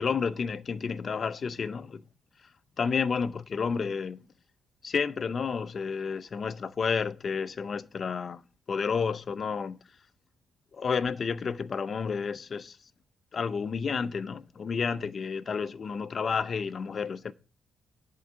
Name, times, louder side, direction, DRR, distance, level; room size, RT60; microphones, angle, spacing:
voice 1, 0.0-2.0 2.8-4.3 4.8-8.4 8.7-9.8 10.7-12.8 13.3-17.3, left 5 dB, 45° left, 0.7 m, -31 dB
10.5 x 4.8 x 7.5 m
cardioid pair, 90°, 0 cm